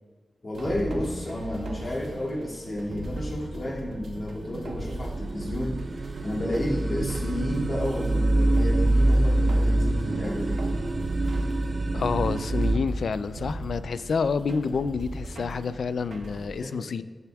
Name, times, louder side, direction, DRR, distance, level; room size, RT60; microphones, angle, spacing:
voice 1, 0.4-10.6 16.6-16.9, left 1 dB, 50° left, -3 dB, 2.3 m, -31 dB
sound 1, 0.5-16.5, right 1 dB, 70° right, 1.0 m, -38 dB
sound 2, 4.1-12.8, right 1 dB, 50° right, 0.5 m, -25 dB
voice 2, 11.9-17.0, left 5 dB, 80° left, 14 dB, 0.3 m, -28 dB
13.5 x 7.1 x 2.3 m, 1.4 s
cardioid pair, 65°, 0 cm